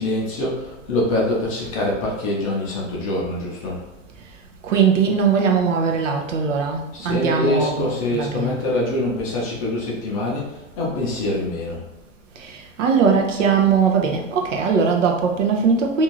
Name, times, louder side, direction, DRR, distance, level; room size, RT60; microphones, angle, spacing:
voice 1, 0.0-3.8 6.9-11.8, left 1 dB, 25° left, -4 dB, 0.5 m, -24 dB
voice 2, 4.6-8.6 12.4-16.0, right 6 dB, 70° right, 2 dB, 0.7 m, -20 dB
2.6 x 2.4 x 3.0 m, 0.98 s
hypercardioid pair, 155°, 40 cm